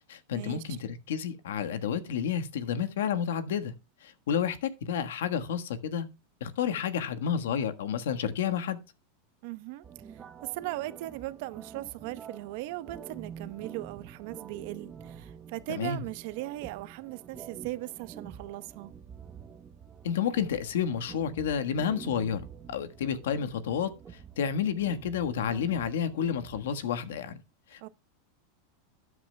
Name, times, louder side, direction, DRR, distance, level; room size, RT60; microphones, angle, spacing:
voice 1, 0.1-3.7 4.0-6.1 6.4-8.8 15.7-16.0 20.0-22.4 22.7-23.9 24.4-27.4 27.7-27.9, left 8 dB, 85° left, 1.4 m, -30 dB
voice 2, 9.4-9.8 10.4-18.9 27.8-27.9, right 17 dB, 55° right, 0.8 m, -38 dB
sound 1, 9.8-26.8, right 7 dB, 20° right, 0.9 m, -48 dB
13.0 x 9.9 x 2.2 m
supercardioid pair, 145°, 0 cm